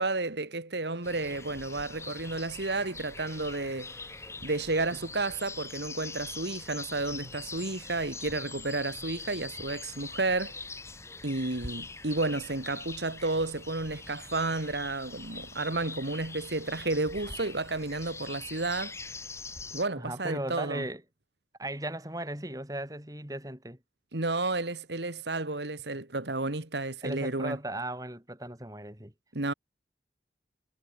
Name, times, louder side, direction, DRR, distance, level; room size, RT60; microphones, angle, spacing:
voice 1, 0.0-3.9 4.4-10.5 11.2-18.9 19.7-20.8 24.1-27.6 29.3-29.5, right 2 dB, 75° right, 2.1 m, -31 dB
sound 1, 1.0-19.8, left 3 dB, 15° left, 3.4 m, -43 dB
voice 2, 20.0-21.0 21.6-23.8 27.0-29.1, right 1 dB, 20° right, 4.4 m, -37 dB
head